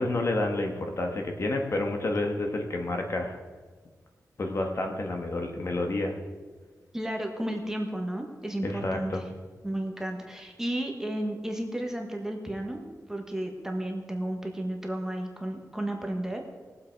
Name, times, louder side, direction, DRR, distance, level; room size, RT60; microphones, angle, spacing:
voice 1, 0.0-3.4 4.4-6.1 8.6-9.2, left 2 dB, 45° left, 3 dB, 1.5 m, -29 dB
voice 2, 6.9-9.2 9.6-16.4, right 1 dB, 10° right, 2 dB, 1.4 m, -33 dB
20.0 x 7.6 x 4.7 m, 1.4 s
wide cardioid pair, 155°, 6 cm